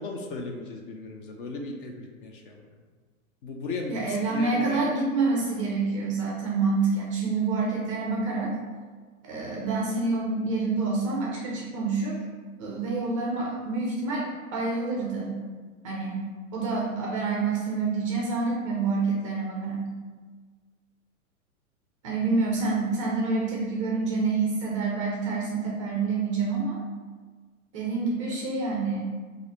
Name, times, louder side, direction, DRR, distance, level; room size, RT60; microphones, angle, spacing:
voice 1, 0.0-2.7 3.4-4.9, left 3 dB, 40° left, 2 dB, 0.4 m, -36 dB
voice 2, 3.9-8.5 9.2-12.2 12.6-15.4 15.8-16.3 16.5-19.9 22.0-26.8 27.7-29.1, right 3 dB, 25° right, -3 dB, 0.3 m, -27 dB
3.1 x 2.5 x 4.0 m, 1.5 s
hypercardioid pair, 125°, 42 cm